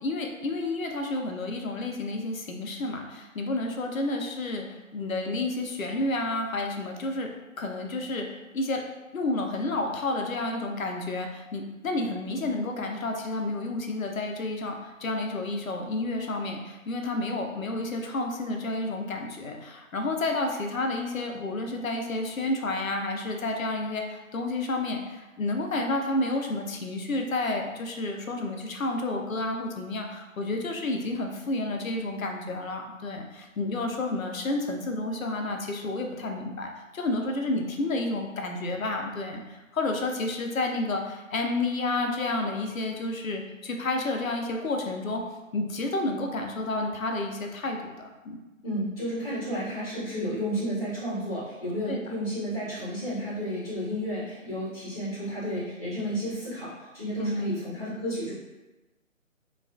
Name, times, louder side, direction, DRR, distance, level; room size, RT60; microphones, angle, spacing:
voice 1, 0.0-7.3 7.6-8.2 8.5-8.8 9.1-45.2 45.5-48.5 51.9-52.0 57.2-57.5, left 2 dB, 80° left, 3 dB, 0.5 m, -30 dB
voice 2, 48.6-58.3, equal, 30° left, -10 dB, 0.6 m, -32 dB
2.3 x 2.3 x 2.2 m, 1.1 s
figure-of-eight pair, 150°, 41 cm